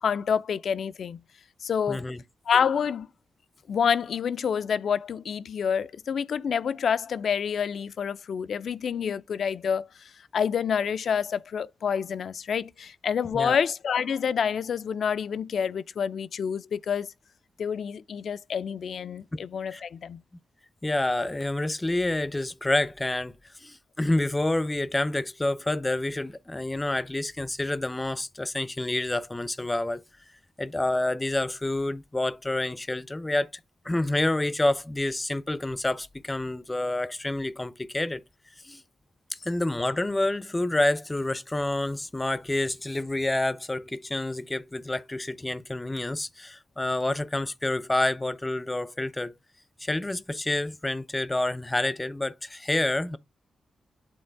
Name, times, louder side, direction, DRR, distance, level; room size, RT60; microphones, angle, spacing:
voice 1, 0.0-1.2 1.6-2.0 2.5-3.1 3.7-9.9 10.3-17.1 17.6-20.2, left 7 dB, 70° left, 0.5 m, -28 dB
voice 2, 1.9-2.2 13.3-13.6 19.3-19.4 19.7-19.8 20.8-23.3 23.6-30.0 30.6-33.5 33.8-38.2 38.6-38.8 39.3-49.3 49.8-53.2, left 1 dB, 20° left, 0.6 m, -28 dB
8.9 x 3.8 x 3.4 m
cardioid pair, 60°, 0 cm